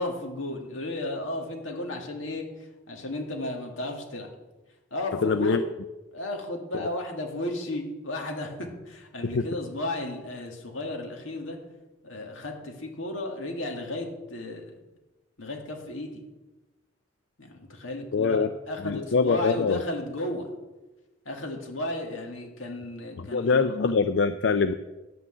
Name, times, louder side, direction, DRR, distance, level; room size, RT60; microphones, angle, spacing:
voice 1, 0.0-2.5 2.9-4.3 4.9-5.6 6.1-11.6 12.0-14.7 15.4-16.2 17.4-20.5 21.3-23.6, left 1 dB, 85° left, 2 dB, 2.1 m, -34 dB
voice 2, 5.2-5.6 9.3-9.4 18.1-18.5 18.8-19.8 23.2-24.7, left 5 dB, 60° left, 10 dB, 0.4 m, -23 dB
11.0 x 6.0 x 7.9 m, 1.1 s
head